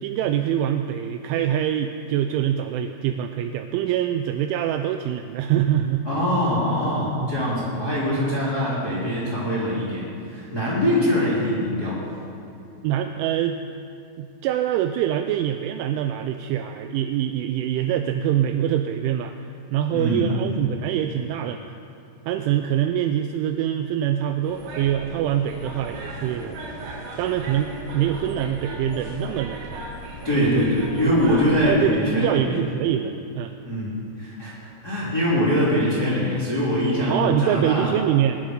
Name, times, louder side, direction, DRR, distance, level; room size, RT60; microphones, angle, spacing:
voice 1, 0.0-6.1 7.2-7.3 12.8-13.6 14.2-19.3 19.7-21.8 22.3-29.9 30.4-30.7 31.1-31.2 31.7-33.5 37.1-38.4, right 10 dB, 85° right, 7 dB, 2.7 m, -24 dB
voice 2, 6.0-12.0 19.9-20.6 30.2-32.6 33.6-37.9, left 1 dB, 25° left, -8 dB, 2.7 m, -23 dB
sound 1, 24.4-31.7, right 2 dB, 55° right, 3.2 m, -37 dB
21.5 x 11.5 x 5.2 m, 2.7 s
omnidirectional pair, 6.0 m